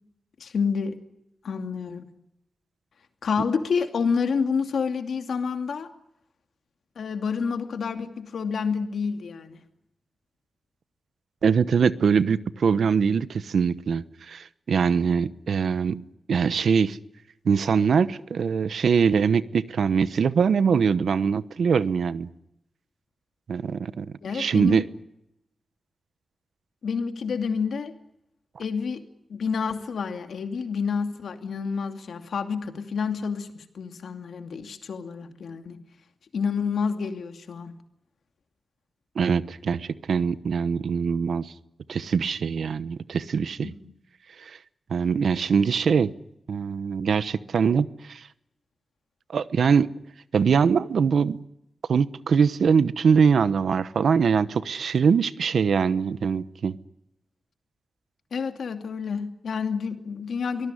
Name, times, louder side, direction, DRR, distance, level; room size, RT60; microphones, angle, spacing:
voice 1, 0.4-1.0 1.4-2.1 3.2-5.9 7.0-9.6 24.2-24.8 26.8-27.9 28.6-29.0 29.3-35.8 36.3-37.7 43.6-43.9 58.3-60.7, left 5 dB, 85° left, 2.6 m, -29 dB
voice 2, 11.4-16.0 16.3-17.0 17.4-22.3 23.5-24.1 24.3-24.9 39.2-41.5 41.9-43.7 44.4-44.6 44.9-46.1 46.5-48.2 49.3-49.9 50.3-51.4 51.9-56.7, right 6 dB, 80° right, 1.0 m, -23 dB
23.5 x 19.5 x 10.0 m
wide cardioid pair, 120°, 0 cm